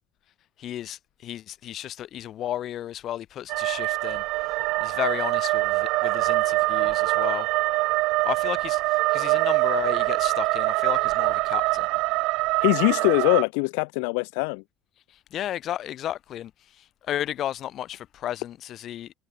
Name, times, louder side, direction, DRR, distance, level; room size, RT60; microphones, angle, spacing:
voice 1, 0.6-4.2 4.8-7.5 8.2-11.9 15.3-16.5 16.8-19.1, left 12 dB, 55° left, 3.5 m, -33 dB
sound 1, 3.5-13.4, right 22 dB, 75° right, 0.8 m, -24 dB
voice 2, 12.6-14.6, left 39 dB, 85° left, 0.9 m, -22 dB
supercardioid pair, 100°, 0 cm